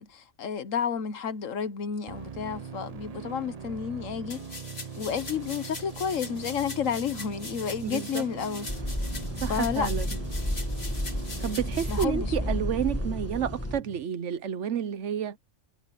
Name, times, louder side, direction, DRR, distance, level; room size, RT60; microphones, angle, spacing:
voice 1, 0.0-4.4 4.9-8.7 9.5-9.9 11.9-12.7, left 7 dB, 75° left, 1.4 m, -31 dB
sound 1, 2.1-14.0, right 6 dB, 45° right, 0.5 m, -41 dB
sound 2, 4.3-12.0, left 3 dB, 50° left, 3.0 m, -42 dB
voice 2, 7.8-8.2 9.4-10.1 11.4-15.4, right 9 dB, 65° right, 1.1 m, -30 dB
sound 3, 8.7-13.8, left 1 dB, 10° left, 1.5 m, -32 dB
omnidirectional pair, 1.4 m